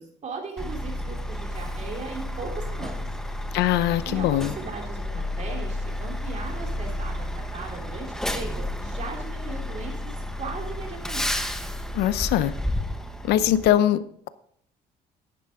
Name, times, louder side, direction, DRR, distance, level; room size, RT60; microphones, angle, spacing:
voice 1, 0.0-3.1 4.0-9.9 10.4-11.3, right 4 dB, 45° right, 1 dB, 3.3 m, -38 dB
Truck, 0.6-13.7, left 1 dB, 5° left, 1.0 m, -31 dB
voice 2, 3.5-4.5 11.9-12.5 13.2-14.3, left 12 dB, 80° left, 15 dB, 0.7 m, -22 dB
11.0 x 9.4 x 3.7 m, 0.66 s
cardioid pair, 110°, 17 cm